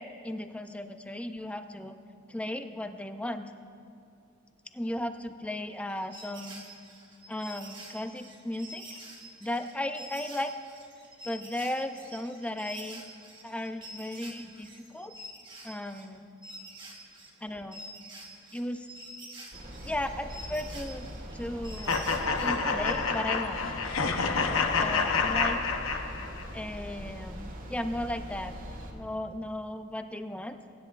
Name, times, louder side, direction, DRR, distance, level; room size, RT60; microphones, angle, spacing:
voice 1, 0.0-2.0 2.3-3.5 4.7-6.6 7.3-9.0 9.4-10.5 11.2-13.0 13.4-15.1 15.6-16.3 17.4-17.8 18.5-18.9 19.8-22.0 22.4-23.6 24.8-25.7 26.5-28.5 28.9-30.6, left 1 dB, 5° left, 8 dB, 0.4 m, -36 dB
sound 1, 5.9-16.2 16.4-22.9, right 1 dB, 25° right, 1.8 m, -47 dB
sound 2, 19.5-28.9, equal, 45° right, 1.5 m, -42 dB
sound 3, 21.9-26.5, left 4 dB, 80° left, 0.8 m, -28 dB
23.0 x 9.8 x 2.4 m, 2.6 s
head